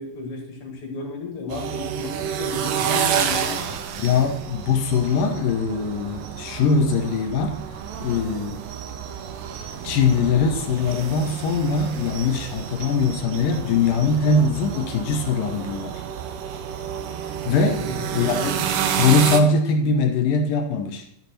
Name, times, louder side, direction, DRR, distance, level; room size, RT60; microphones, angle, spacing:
voice 1, 0.0-3.8 17.7-18.1, left 3 dB, 50° left, 1 dB, 1.9 m, -33 dB
sound 1, 1.5-19.4, right 8 dB, 85° right, 1.8 m, -29 dB
voice 2, 4.0-7.6 8.0-8.6 9.8-16.0 17.5-17.9 18.1-18.7 19.0-21.0, left 4 dB, 70° left, 4 dB, 2.4 m, -21 dB
11.5 x 6.0 x 4.3 m, 0.74 s
omnidirectional pair, 4.7 m